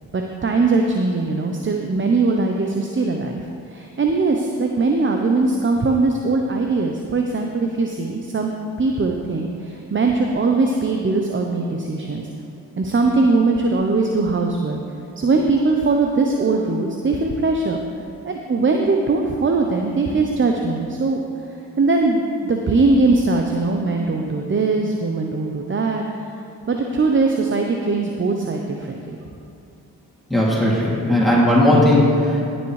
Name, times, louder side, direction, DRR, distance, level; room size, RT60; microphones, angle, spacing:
voice 1, 0.1-3.4 3.7-8.5 8.8-12.3 12.8-14.8 15.2-17.8 18.2-21.2 21.8-26.0 26.7-29.2, right 3 dB, 30° right, 2 dB, 0.8 m, -20 dB
voice 2, 30.3-32.4, left 1 dB, ahead, -6 dB, 2.7 m, -16 dB
18.0 x 7.1 x 3.3 m, 2.6 s
supercardioid pair, 50°, 38 cm